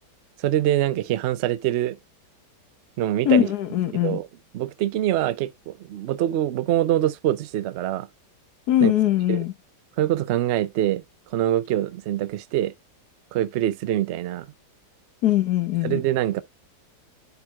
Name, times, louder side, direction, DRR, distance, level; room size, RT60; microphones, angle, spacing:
voice 1, 0.4-2.0 3.0-3.5 4.0-4.2 4.5-8.1 8.8-8.9 9.3-9.4 10.0-11.0 11.3-12.7 13.3-14.5 15.8-16.4, right 13 dB, 75° right, 0.6 m, -24 dB
voice 2, 3.2-4.2 8.7-9.5 15.2-16.0, left 12 dB, 70° left, 1.4 m, -21 dB
13.0 x 4.6 x 2.3 m
omnidirectional pair, 1.8 m